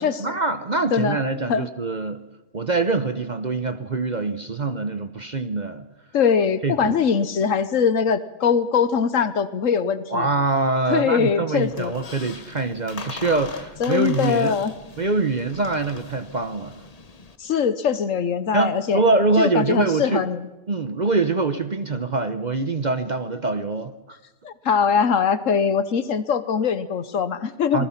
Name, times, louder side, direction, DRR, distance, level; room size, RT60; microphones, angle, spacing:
voice 1, 0.0-2.2 2.5-5.9 6.6-7.0 10.1-14.5 15.0-16.7 18.5-20.2 20.7-24.2 27.7-27.9, right 3 dB, 35° right, 10 dB, 0.8 m, -24 dB
voice 2, 6.1-10.3 10.9-11.9 13.8-14.7 17.4-19.0 19.4-20.5 24.4-27.9, left 6 dB, 65° left, 14 dB, 1.3 m, -22 dB
Squeak, 11.6-17.4, left 4 dB, 30° left, 1.0 m, -40 dB
26.5 x 19.5 x 5.8 m, 1.0 s
omnidirectional pair, 1.5 m